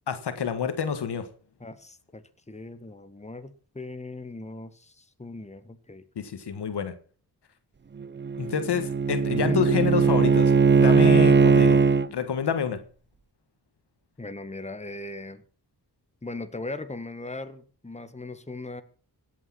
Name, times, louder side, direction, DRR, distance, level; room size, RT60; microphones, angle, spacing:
voice 1, 0.1-1.2 6.1-6.9 8.4-10.5 10.8-11.8 12.1-12.8, left 6 dB, 85° left, 1.7 m, -28 dB
voice 2, 1.6-6.1 9.3-9.6 14.2-15.4 16.2-18.8, left 2 dB, 15° left, 1.6 m, -38 dB
Bowed string instrument, 8.0-12.1, right 5 dB, 30° right, 0.6 m, -19 dB
16.0 x 8.7 x 5.9 m
cardioid pair, 50°, 39 cm